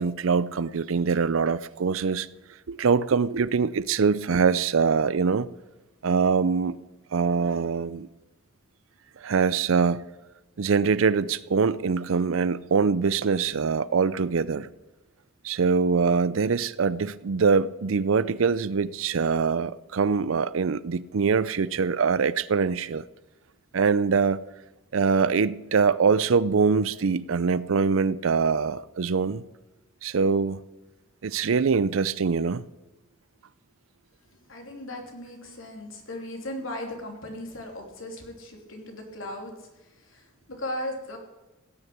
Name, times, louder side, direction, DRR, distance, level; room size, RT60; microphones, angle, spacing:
voice 1, 0.0-2.3 2.7-5.5 6.0-6.8 7.1-8.1 9.2-10.0 10.6-14.7 15.4-23.0 23.7-24.4 24.9-29.4 30.0-30.6 31.2-32.6, right 5 dB, 90° right, 0.5 m, -23 dB
voice 2, 34.5-41.2, left 1 dB, 85° left, 3.0 m, -37 dB
16.5 x 6.8 x 8.6 m
head